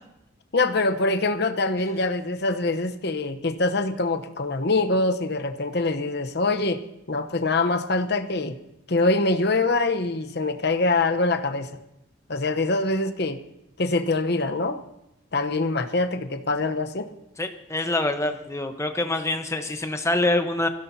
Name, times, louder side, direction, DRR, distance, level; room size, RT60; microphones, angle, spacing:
voice 1, 0.5-6.8 7.1-8.6 8.9-11.7 12.3-13.4 13.8-14.8 15.3-17.1, left 2 dB, 55° left, 8 dB, 0.9 m, -24 dB
voice 2, 17.4-20.7, left 2 dB, 15° left, 6 dB, 1.0 m, -25 dB
23.0 x 16.0 x 2.8 m, 0.87 s
head